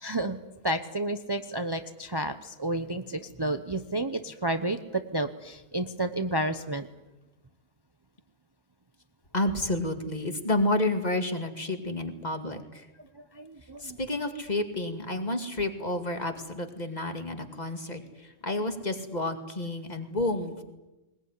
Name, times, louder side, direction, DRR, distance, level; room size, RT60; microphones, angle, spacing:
voice 1, 0.0-0.4 0.6-6.9 13.1-14.0, right 1 dB, 20° right, 8 dB, 0.8 m, -31 dB
voice 2, 9.3-12.9 13.8-20.6, left 1 dB, 35° left, 6 dB, 2.4 m, -30 dB
21.0 x 20.5 x 9.7 m, 1.0 s
omnidirectional pair, 1.3 m